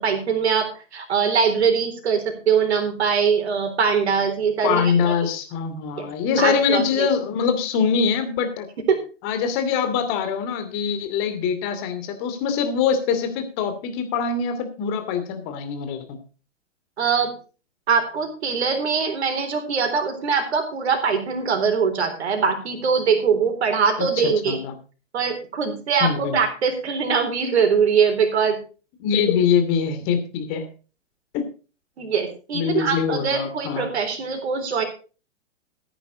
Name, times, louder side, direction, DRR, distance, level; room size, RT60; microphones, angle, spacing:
voice 1, 0.0-4.9 6.0-7.1 8.9-9.0 17.0-17.3 17.9-24.6 25.1-28.6 32.0-34.8, right 6 dB, 60° right, 5 dB, 4.0 m, -22 dB
voice 2, 4.6-8.7 9.2-16.2 24.2-24.7 26.0-26.4 29.0-30.7 31.3-31.5 32.5-33.8, left 6 dB, 30° left, 8 dB, 2.7 m, -23 dB
14.5 x 10.0 x 4.0 m, 0.35 s
figure-of-eight pair, 115°, 37 cm